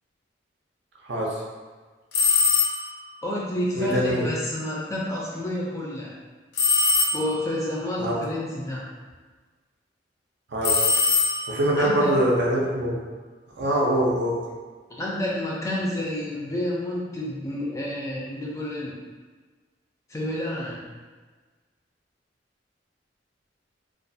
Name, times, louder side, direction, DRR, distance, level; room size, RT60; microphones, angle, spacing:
voice 1, 1.0-1.4 3.7-4.3 8.0-8.2 10.5-10.9 11.5-13.0 13.6-14.4, right 1 dB, 70° right, -3 dB, 0.5 m, -23 dB
sound 1, 2.1-3.0 6.6-7.6 10.6-11.8, left 4 dB, 75° left, 0.5 m, -22 dB
voice 2, 3.2-6.1 7.1-8.8 11.7-12.1 14.9-18.9 20.1-20.8, left 1 dB, 15° left, -5 dB, 0.4 m, -29 dB
2.3 x 2.3 x 2.6 m, 1.4 s
head